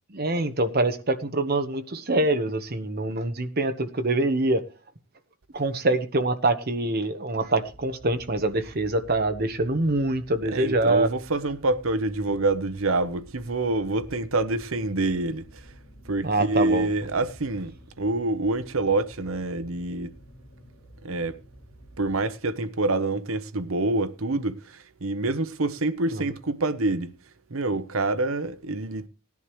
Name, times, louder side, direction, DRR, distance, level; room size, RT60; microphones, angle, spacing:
voice 1, 0.1-4.6 5.5-11.1 16.2-16.9 26.1-26.2, right 2 dB, 45° right, 1.1 m, -25 dB
sound 1, 7.4-22.7, equal, 35° left, 4.9 m, -50 dB
voice 2, 10.5-15.6 16.0-20.1 21.0-21.4 22.0-27.1 27.5-29.1, right 2 dB, 70° right, 0.9 m, -26 dB
18.0 x 11.0 x 3.1 m
head